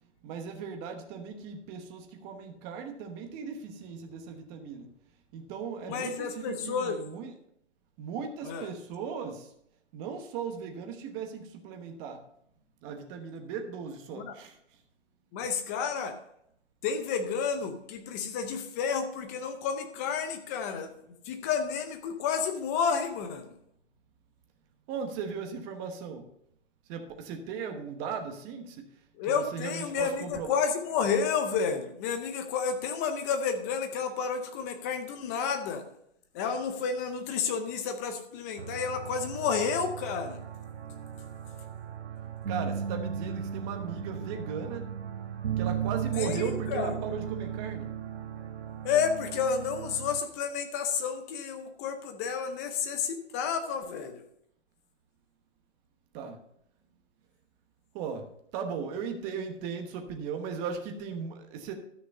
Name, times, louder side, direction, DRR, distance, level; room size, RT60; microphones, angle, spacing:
voice 1, 0.2-4.9 5.3-7.3 8.0-9.5 9.9-12.2 12.8-14.6 24.9-26.3 26.9-30.6 42.5-44.9 45.6-47.9 56.1-56.4 57.9-61.7, right 6 dB, 20° right, 5 dB, 1.1 m, -37 dB
voice 2, 5.9-7.0 8.4-8.7 14.1-14.3 15.3-16.2 16.8-20.9 21.2-23.5 29.2-35.9 36.3-40.4 46.1-46.9 48.8-54.2, left 6 dB, 15° left, 7 dB, 0.6 m, -31 dB
sound 1, 38.6-50.2, right 8 dB, 70° right, 1.6 m, -36 dB
12.5 x 6.2 x 5.4 m, 0.73 s
hypercardioid pair, 155°, 36 cm